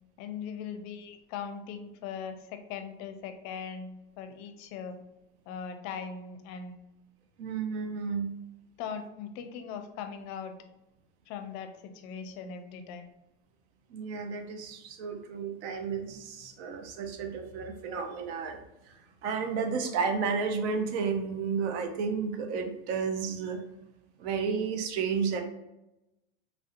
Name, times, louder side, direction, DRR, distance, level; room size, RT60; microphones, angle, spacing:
voice 1, 0.2-5.0 5.5-6.8 8.8-10.5 11.3-13.1, left 6 dB, 50° left, 7 dB, 0.5 m, -40 dB
voice 2, 7.4-8.3 13.9-18.6 19.2-23.6 24.2-25.4, right 5 dB, 70° right, 6 dB, 0.7 m, -32 dB
3.2 x 2.6 x 2.5 m, 0.94 s
supercardioid pair, 125°, 36 cm